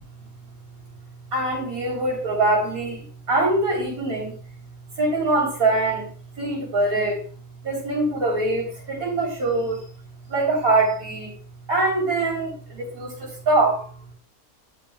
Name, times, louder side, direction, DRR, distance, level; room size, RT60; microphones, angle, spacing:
voice 1, 1.3-4.3 5.0-6.1 6.4-7.2 7.6-9.8 10.3-11.4 11.7-13.9, right 2 dB, 75° right, -3 dB, 4.3 m, -23 dB
12.0 x 8.8 x 2.3 m, 0.39 s
omnidirectional pair, 1.5 m